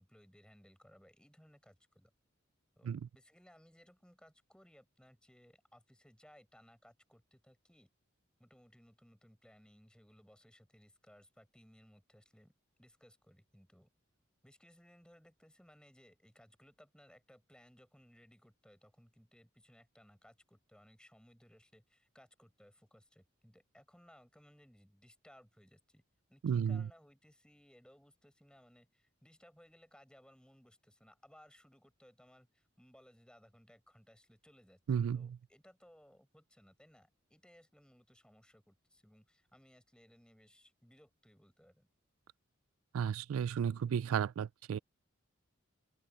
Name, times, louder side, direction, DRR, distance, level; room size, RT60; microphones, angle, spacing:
voice 1, 0.0-2.1 2.8-7.9 8.4-12.5 12.8-13.9 14.4-26.0 26.3-34.8 35.1-41.9, equal, 5° left, 6.3 m, -63 dB
voice 2, 26.4-26.9 34.9-35.4 42.9-44.8, right 7 dB, 90° right, 0.3 m, -33 dB
open air
head